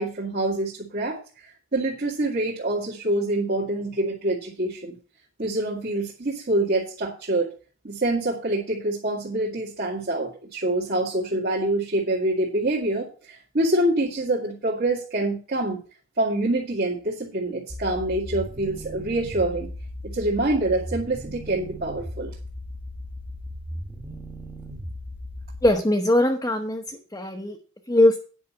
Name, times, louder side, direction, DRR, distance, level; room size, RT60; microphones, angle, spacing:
voice 1, 0.0-5.0 5.4-7.5 7.8-15.8 16.2-19.7 20.0-22.3, right 1 dB, 50° right, -7 dB, 2.3 m, -26 dB
sound 1, 17.7-25.7, equal, 10° right, 1.4 m, -37 dB
voice 2, 25.6-27.6 27.9-28.2, left 1 dB, 15° left, 3 dB, 1.0 m, -21 dB
9.6 x 5.7 x 7.2 m, 0.38 s
head